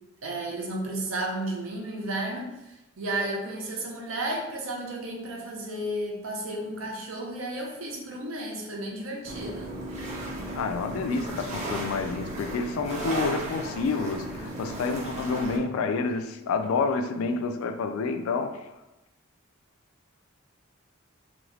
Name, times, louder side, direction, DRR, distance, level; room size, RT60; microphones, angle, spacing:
voice 1, 0.2-9.7, right 1 dB, 80° right, -1 dB, 0.7 m, -33 dB
sound 1, 9.2-15.6, right 1 dB, 35° right, 0.7 m, -35 dB
voice 2, 10.5-18.6, left 4 dB, 85° left, 8 dB, 0.3 m, -29 dB
2.7 x 2.5 x 3.2 m, 0.95 s
head